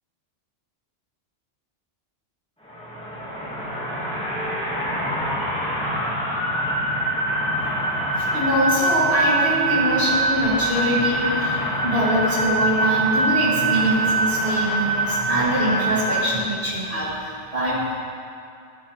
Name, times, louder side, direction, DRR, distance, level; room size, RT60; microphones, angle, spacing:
sound 1, 2.6-16.3, right 2 dB, 5° left, 1.5 m, -24 dB
voice 1, 8.2-17.9, equal, 50° right, -9 dB, 2.5 m, -23 dB
14.0 x 7.3 x 3.2 m, 2.4 s
omnidirectional pair, 1.2 m